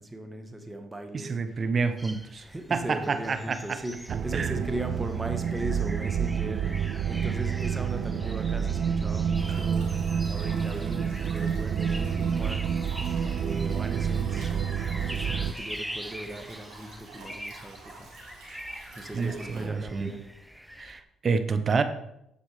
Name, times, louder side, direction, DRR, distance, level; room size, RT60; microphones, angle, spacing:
voice 1, 0.0-1.6 2.4-9.9 10.3-12.6 13.4-14.5 15.0-18.1 18.9-20.2, right 1 dB, 20° right, 5 dB, 1.8 m, -38 dB
voice 2, 1.1-2.4 2.7-3.8 4.3-4.5 19.1-20.1 20.8-21.8, right 4 dB, 45° right, 10 dB, 1.1 m, -28 dB
sound 1, 2.0-21.0, equal, ahead, 0.9 m, -43 dB
sound 2, 4.1-15.5, right 7 dB, 60° right, 0.5 m, -28 dB
sound 3, 9.3-19.6, right 2 dB, 85° right, 4.5 m, -49 dB
13.5 x 5.1 x 5.1 m, 0.83 s
supercardioid pair, 65°, 0 cm